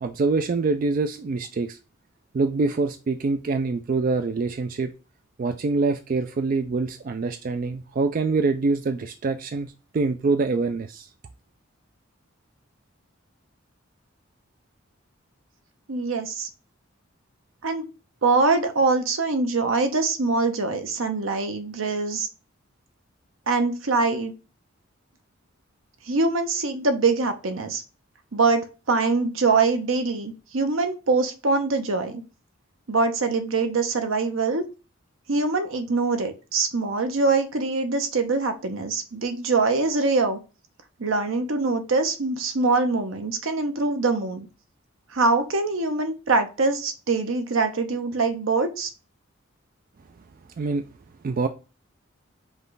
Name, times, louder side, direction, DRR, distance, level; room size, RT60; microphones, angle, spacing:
voice 1, 0.0-1.8 2.3-4.9 5.4-11.1 50.6-50.9 51.2-51.5, right 3 dB, 45° right, 0.3 m, -25 dB
voice 2, 15.9-16.5 17.6-17.8 18.2-22.3 23.5-24.3 26.1-27.8 28.3-32.2 32.9-34.6 35.3-40.4 41.0-44.5 45.1-48.9, right 3 dB, 75° right, 0.8 m, -23 dB
5.3 x 2.4 x 3.9 m
head